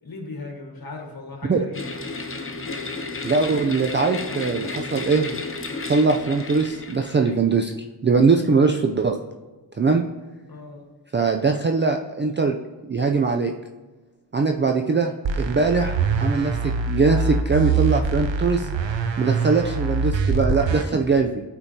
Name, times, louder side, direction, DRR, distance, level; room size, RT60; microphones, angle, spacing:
voice 1, 0.0-1.9 10.5-10.9, left 3 dB, 55° left, 1 dB, 1.6 m, -37 dB
sound 1, 1.7-7.3, left 3 dB, 30° left, 0.7 m, -32 dB
voice 2, 3.2-5.3 5.9-7.7 8.0-9.2 9.8-10.0 11.1-12.6 12.9-13.5 14.3-18.7 19.2-21.4, right 4 dB, 25° right, 4 dB, 0.4 m, -21 dB
sound 2, 15.2-20.8, right 4 dB, 80° right, 0.7 m, -24 dB
8.3 x 4.5 x 2.8 m, 1.2 s
wide cardioid pair, 55°, 44 cm